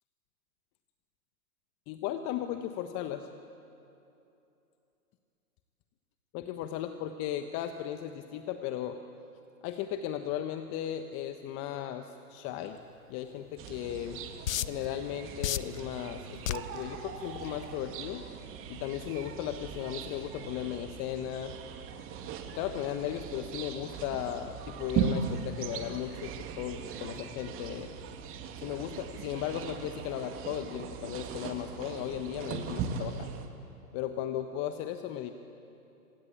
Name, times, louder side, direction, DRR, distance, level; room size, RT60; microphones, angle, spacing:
voice 1, 1.9-3.3 6.3-9.0 9.6-12.8 13.1-14.2 14.7-18.3 18.7-21.6 22.5-27.9 28.6-33.3 33.9-35.3, left 11 dB, 30° left, 8 dB, 1.2 m, -36 dB
sound 1, 13.6-33.5, right 7 dB, 30° right, 2.5 m, -39 dB
sound 2, 13.7-13.8 14.5-14.9 15.4-15.8 16.5-16.8 17.4-17.6, left 12 dB, 60° left, 1.0 m, -30 dB
27.0 x 25.0 x 8.7 m, 2.9 s
hypercardioid pair, 120°, 46 cm